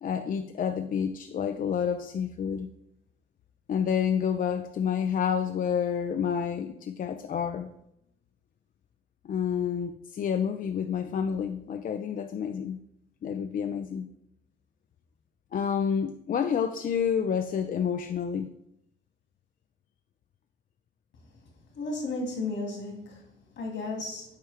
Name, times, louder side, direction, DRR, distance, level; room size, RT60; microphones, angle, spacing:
voice 1, 0.0-2.7 3.7-7.7 9.2-12.8 13.2-14.1 15.5-18.5, left 7 dB, 45° left, 7 dB, 0.4 m, -29 dB
voice 2, 21.8-23.3 23.6-24.3, left 2 dB, 70° left, 0 dB, 2.3 m, -33 dB
8.1 x 4.4 x 3.4 m, 0.78 s
cardioid pair, 90°, 20 cm